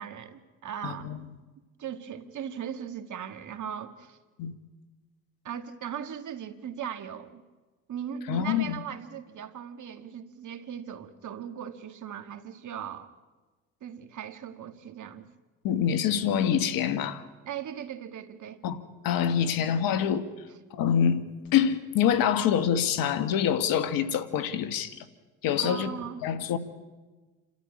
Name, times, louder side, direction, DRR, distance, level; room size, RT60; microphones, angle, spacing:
voice 1, 0.0-1.3 1.8-4.2 5.4-7.4 7.9-13.1 13.8-15.3 17.4-18.6 25.6-26.2, right 8 dB, 55° right, 8 dB, 2.1 m, -38 dB
voice 2, 0.8-1.2 4.4-4.5 8.3-8.8 15.6-17.2 18.6-18.8 19.0-20.3 20.7-21.2 21.5-25.1 25.4-25.9 26.2-26.6, left 8 dB, 70° left, 11 dB, 1.7 m, -25 dB
28.5 x 13.5 x 9.8 m, 1.3 s
supercardioid pair, 65°, 35 cm